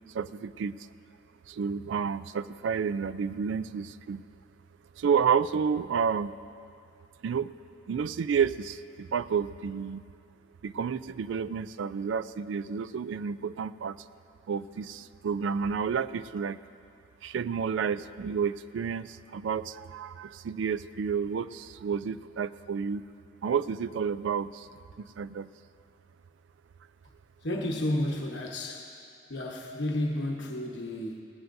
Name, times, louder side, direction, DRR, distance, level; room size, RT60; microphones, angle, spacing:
voice 1, 0.1-0.9 1.5-4.2 5.0-6.3 7.2-7.5 7.9-10.0 10.6-14.0 14.5-16.6 17.2-23.0 23.4-24.7 25.0-25.5, right 6 dB, 70° right, 15 dB, 0.3 m, -30 dB
voice 2, 27.4-28.9 29.3-31.2, left 1 dB, 65° left, 0 dB, 1.0 m, -31 dB
18.5 x 15.5 x 2.6 m, 2.4 s
head